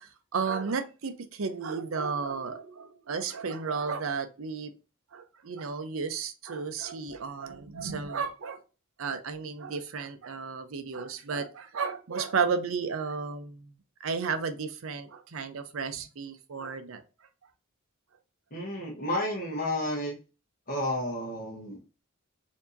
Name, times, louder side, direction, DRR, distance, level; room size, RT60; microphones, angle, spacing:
voice 1, 0.0-4.7 5.1-8.6 9.0-13.7 14.0-17.0, right 5 dB, 70° right, 0.6 m, -33 dB
voice 2, 18.5-20.2 20.7-21.8, left 1 dB, 45° left, 1.1 m, -31 dB
4.6 x 2.7 x 2.6 m
head